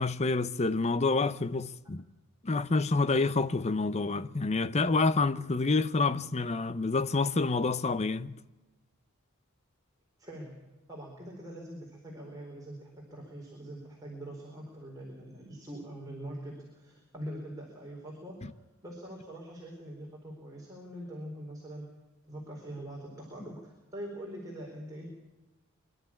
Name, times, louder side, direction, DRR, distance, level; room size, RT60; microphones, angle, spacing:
voice 1, 0.0-2.0 2.4-8.3 18.4-18.5, left 3 dB, 30° left, 0.7 m, -28 dB
voice 2, 10.2-10.6 10.9-18.6 18.8-21.9 22.3-25.1, right 1 dB, 15° right, 4.3 m, -43 dB
25.0 x 12.0 x 8.6 m
head